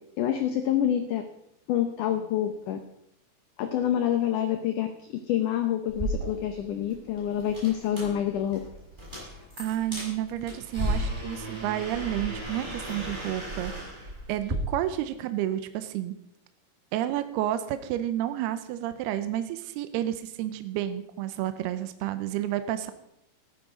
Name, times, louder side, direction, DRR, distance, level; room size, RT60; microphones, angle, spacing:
voice 1, 0.2-1.2 1.7-2.8 3.6-8.6, left 10 dB, 85° left, 7 dB, 1.8 m, -27 dB
sound 1, 5.9-14.6, right 1 dB, 10° right, 5.8 m, -35 dB
voice 2, 9.6-13.7 14.3-16.2 16.9-22.9, right 12 dB, 80° right, 10 dB, 2.7 m, -30 dB
14.0 x 11.0 x 5.1 m, 0.80 s
omnidirectional pair, 4.8 m